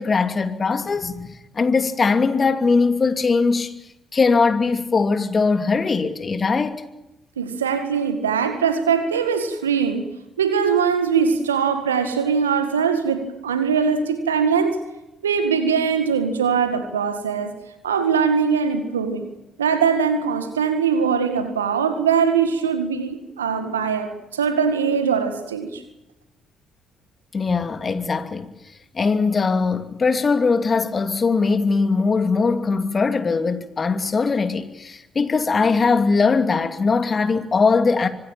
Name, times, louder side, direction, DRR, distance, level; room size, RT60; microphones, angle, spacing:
voice 1, 0.0-3.7 4.1-6.8 27.3-28.5 28.9-38.1, left 4 dB, 35° left, 2.7 m, -20 dB
voice 2, 7.4-10.1 10.4-14.8 15.2-17.5 17.8-19.3 19.6-25.8, right 6 dB, 85° right, 1.9 m, -21 dB
25.5 x 20.0 x 8.9 m
hypercardioid pair, 45°, 0 cm